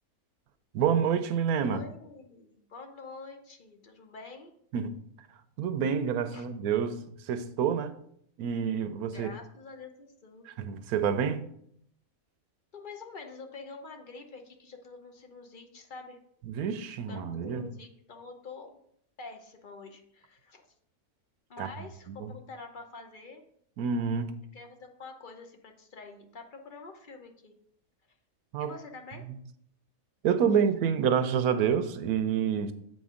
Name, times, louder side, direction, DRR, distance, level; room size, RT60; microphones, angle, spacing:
voice 1, 0.7-1.8 4.7-5.0 5.6-7.9 8.4-9.3 10.5-11.4 16.5-17.6 21.6-21.7 22.1-22.3 23.8-24.3 28.5-28.7 30.2-32.7, right 7 dB, 85° right, 1.1 m, -28 dB
voice 2, 1.6-4.5 6.3-6.5 9.1-10.5 12.7-16.2 17.1-18.8 19.2-20.6 21.5-23.4 24.5-27.6 28.6-29.2, left 4 dB, 40° left, 0.8 m, -46 dB
7.8 x 5.2 x 3.7 m
omnidirectional pair, 1.5 m